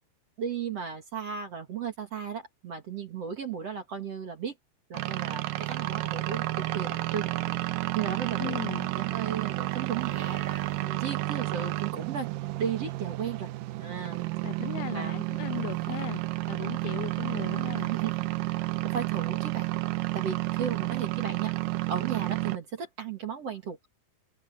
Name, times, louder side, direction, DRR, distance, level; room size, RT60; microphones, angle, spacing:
voice 1, 0.4-4.6 4.9-8.6 8.9-10.4 10.8-12.3 12.6-13.5 13.8-14.3 14.9-15.2 17.9-18.1 18.8-19.7 20.1-23.9, right 7 dB, 45° right, 2.3 m, -35 dB
sound 1, 4.9-22.6, right 18 dB, 85° right, 2.0 m, -31 dB
voice 2, 8.4-8.9 14.4-16.2 16.5-17.9, left 17 dB, 80° left, 2.3 m, -37 dB
Livestock farm animals working animals, 9.9-10.8, right 3 dB, 60° right, 1.0 m, -46 dB
omnidirectional pair, 4.9 m